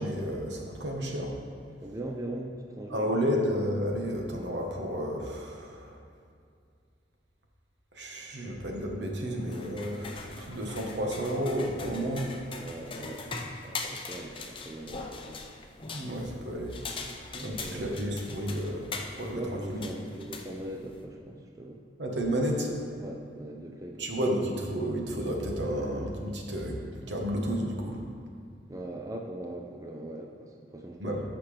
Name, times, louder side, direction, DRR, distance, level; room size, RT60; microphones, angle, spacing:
voice 1, 0.0-1.3 2.9-6.0 7.9-12.3 15.9-16.8 17.4-18.9 19.2-19.4 19.7-19.8 22.0-22.7 24.0-26.8 27.1-28.0 31.0-31.2, equal, 75° right, 0 dB, 1.3 m, -31 dB
voice 2, 1.8-3.3 11.8-12.2 12.6-15.2 17.3-17.9 19.3-21.8 23.0-24.3 28.7-31.2, right 1 dB, 20° right, 1 dB, 0.5 m, -40 dB
sound 1, 9.4-21.0, left 3 dB, 30° left, 0.6 m, -41 dB
14.5 x 5.9 x 3.3 m, 2.3 s
head